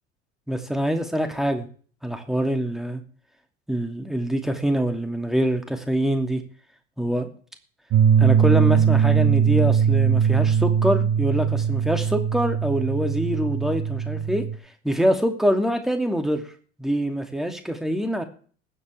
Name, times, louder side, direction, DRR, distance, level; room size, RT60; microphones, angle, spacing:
voice 1, 0.5-1.7 2.0-3.0 3.7-6.4 7.0-7.3 8.2-14.4 14.8-16.4 16.8-18.2, equal, ahead, 5 dB, 2.5 m, -24 dB
sound 1, 7.9-14.5, right 7 dB, 45° right, 1.5 m, -20 dB
21.0 x 7.9 x 3.5 m, 0.43 s
figure-of-eight pair, 65°, 34 cm